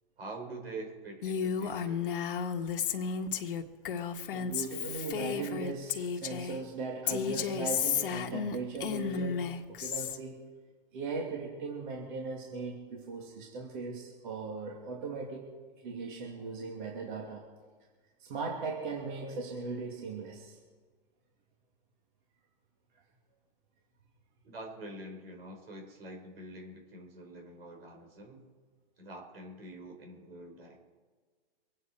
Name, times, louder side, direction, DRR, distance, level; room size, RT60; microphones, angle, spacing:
voice 1, 0.2-2.4 24.4-28.4 29.0-30.8, right 2 dB, 80° right, 2 dB, 4.9 m, -45 dB
Female speech woman speaking, 1.2-6.6 7.1-10.2, left 7 dB, 65° left, 1.5 m, -33 dB
voice 2, 4.3-9.5 9.8-10.5 10.9-15.5 15.8-17.4 18.2-20.6, right 4 dB, 55° right, -1 dB, 2.8 m, -38 dB
25.0 x 9.3 x 4.5 m, 1.5 s
hypercardioid pair, 145°, 29 cm